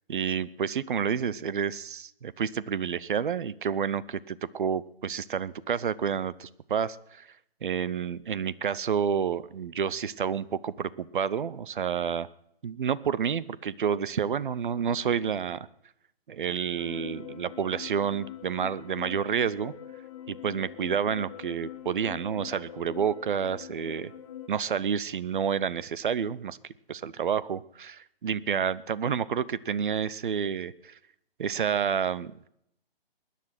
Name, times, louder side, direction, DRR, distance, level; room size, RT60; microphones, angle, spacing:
voice 1, 0.1-7.3 7.6-12.3 12.6-15.7 16.3-19.7 20.3-24.1 24.5-26.6 26.9-31.0 31.4-32.5, right 7 dB, 55° right, 20 dB, 0.7 m, -29 dB
sound 1, 16.8-24.5, left 11 dB, 30° left, 0.9 m, -43 dB
20.0 x 10.0 x 5.9 m, 0.75 s
figure-of-eight pair, 150°, 31 cm